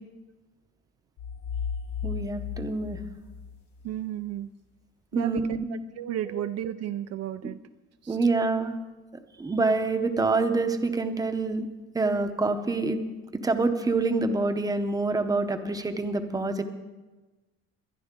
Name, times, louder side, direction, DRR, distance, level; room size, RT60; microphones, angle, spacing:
sound 1, 1.2-4.0, left 7 dB, 65° left, 0.9 m, -35 dB
voice 1, 2.0-3.0 5.1-5.6 6.3-6.4 8.1-8.7 9.4-11.6 11.9-13.0 13.3-16.6, right 3 dB, 10° right, 8 dB, 0.7 m, -26 dB
voice 2, 3.8-4.5 5.1-7.6 8.0-8.2, right 11 dB, 55° right, 10 dB, 0.4 m, -33 dB
21.5 x 10.5 x 3.7 m, 1.2 s
cardioid pair, 175°, 31 cm